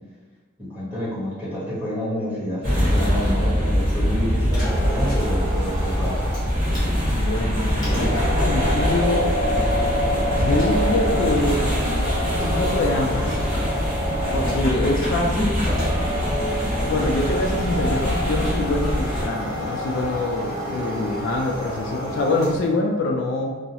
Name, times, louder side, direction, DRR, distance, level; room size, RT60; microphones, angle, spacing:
voice 1, 0.6-6.3, equal, 10° right, -12 dB, 1.1 m, -29 dB
sound 1, 2.6-19.3, equal, 40° right, 0.9 m, -24 dB
sound 2, 4.4-22.7, equal, 20° left, 0.8 m, -28 dB
voice 2, 7.1-9.3 10.4-11.6 12.4-13.4 14.3-15.6 16.8-23.6, left 2 dB, 65° left, 1 dB, 0.3 m, -25 dB
2.3 x 2.0 x 2.8 m, 1.3 s
head